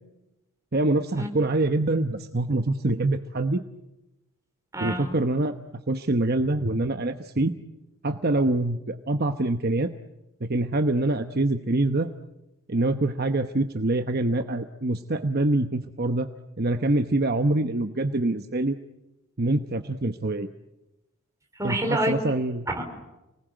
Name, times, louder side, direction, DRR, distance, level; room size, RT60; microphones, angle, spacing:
voice 1, 0.7-3.6 4.8-5.6 5.9-7.5 8.0-9.9 10.5-12.1 12.7-16.3 16.6-18.8 19.4-20.5 21.6-21.8 22.1-22.6, right 2 dB, 45° right, 7 dB, 1.0 m, -25 dB
voice 2, 4.7-5.2 21.5-22.1 22.7-22.8, right 1 dB, 15° right, 3 dB, 4.4 m, -27 dB
30.0 x 19.5 x 9.1 m, 0.97 s
head